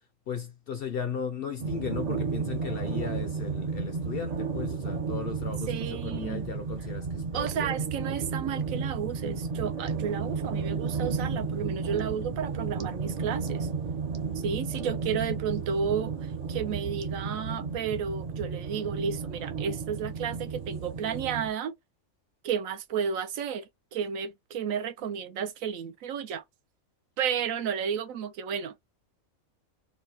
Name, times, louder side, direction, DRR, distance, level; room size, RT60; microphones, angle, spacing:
voice 1, 0.3-7.7, left 6 dB, 60° left, 0.6 m, -36 dB
sound 1, 1.6-21.5, right 5 dB, 50° right, 0.5 m, -33 dB
voice 2, 5.7-6.5 7.3-13.7 14.4-21.7 22.4-26.4 27.2-28.7, right 7 dB, 80° right, 1.0 m, -32 dB
3.8 x 2.2 x 2.7 m
omnidirectional pair, 1.4 m